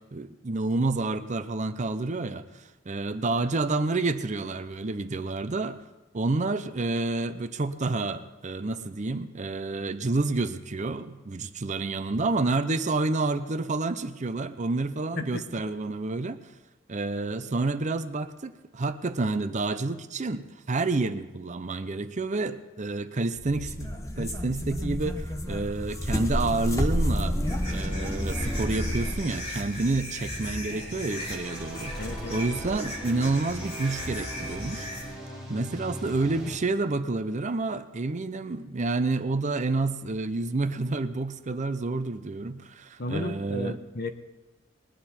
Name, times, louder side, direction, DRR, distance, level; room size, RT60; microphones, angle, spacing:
voice 1, 0.0-5.8 6.1-16.4 16.9-27.4 27.7-32.0 32.3-34.9 35.5-43.8, right 3 dB, 40° right, 11 dB, 0.6 m, -29 dB
sound 1, 23.4-29.3, equal, 15° left, 1.0 m, -29 dB
sound 2, 27.4-35.0, equal, 30° left, 3.9 m, -37 dB
sound 3, 30.9-36.6, equal, 5° right, 3.1 m, -40 dB
voice 2, 32.0-32.4 43.0-44.1, left 1 dB, 50° left, 8 dB, 0.9 m, -33 dB
20.5 x 10.0 x 4.3 m, 1.1 s
head